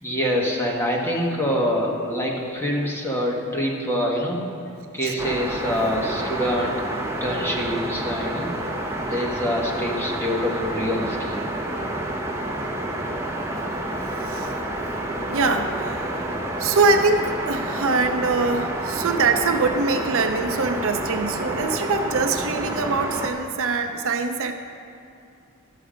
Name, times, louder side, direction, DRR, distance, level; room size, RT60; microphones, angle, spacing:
voice 1, 0.0-4.5 4.9-8.5 9.0-11.4, equal, 10° left, -2 dB, 1.3 m, -25 dB
sound 1, 5.2-23.3, right 1 dB, 10° right, 0.8 m, -29 dB
voice 2, 15.3-16.1 16.6-24.5, right 3 dB, 65° right, 7 dB, 0.6 m, -23 dB
11.5 x 7.0 x 5.0 m, 2.5 s
head